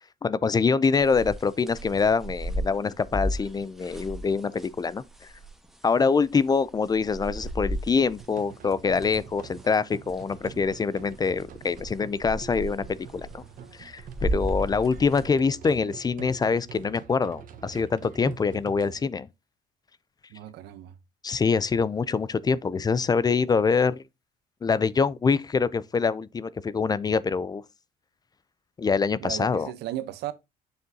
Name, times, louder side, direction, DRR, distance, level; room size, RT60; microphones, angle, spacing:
voice 1, 0.2-5.0 5.8-13.4 13.8-19.3 21.2-24.0 24.6-27.6 28.8-29.7, left 5 dB, 25° left, 0.4 m, -25 dB
sound 1, 1.0-5.7 6.0-6.1 6.3-8.3 8.5-9.7 10.1-10.7 11.0-15.2, right 1 dB, ahead, 1.2 m, -34 dB
sound 2, 8.2-19.0, right 8 dB, 55° right, 1.1 m, -45 dB
voice 2, 20.3-20.9 29.2-30.3, right 13 dB, 80° right, 0.8 m, -35 dB
6.8 x 6.7 x 2.7 m
cardioid pair, 110°, 17 cm